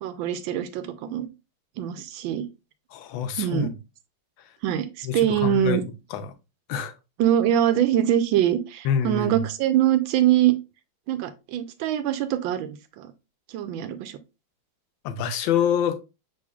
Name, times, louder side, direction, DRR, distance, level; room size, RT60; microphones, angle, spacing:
voice 1, 0.0-1.3 1.8-2.5 3.4-3.7 4.6-5.8 7.2-10.6 11.1-13.1 13.5-14.2, right 11 dB, 85° right, 1.4 m, -23 dB
voice 2, 2.9-3.7 5.0-5.8 6.1-6.3 6.7-6.9 8.8-9.4 15.0-16.0, left 8 dB, 85° left, 1.4 m, -26 dB
6.3 x 3.5 x 2.3 m
omnidirectional pair, 2.1 m